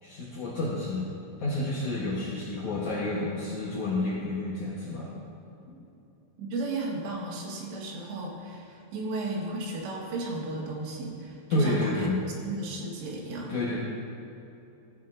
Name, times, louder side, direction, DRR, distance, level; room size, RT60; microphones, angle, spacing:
voice 1, 0.0-1.1 1.4-5.1 5.7-5.8 11.5-12.2 13.5-13.8, left 2 dB, 75° left, -6 dB, 1.7 m, -29 dB
voice 2, 6.4-12.1 12.4-13.6, right 2 dB, 85° right, -1 dB, 3.6 m, -34 dB
14.5 x 9.1 x 2.5 m, 2.9 s
omnidirectional pair, 4.9 m